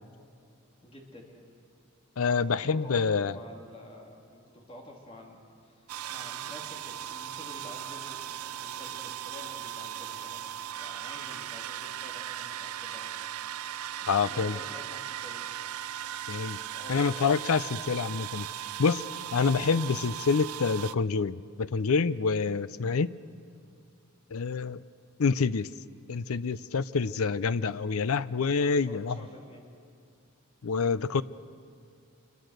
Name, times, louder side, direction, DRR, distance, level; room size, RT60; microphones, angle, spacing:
voice 1, 0.8-1.5 2.2-10.4 10.7-13.2 14.0-15.5 16.7-17.3 28.6-29.7, left 1 dB, 25° left, 0 dB, 2.9 m, -49 dB
voice 2, 2.2-3.3 14.1-14.6 16.3-16.6 16.9-18.5 18.8-19.0 19.3-23.1 24.3-24.8 25.2-25.7 26.1-29.2 30.6-31.2, left 5 dB, 75° left, 16 dB, 0.5 m, -27 dB
sound 1, 5.9-20.9, right 11 dB, 85° right, 0.5 m, -38 dB
26.5 x 22.5 x 6.5 m, 2.4 s
head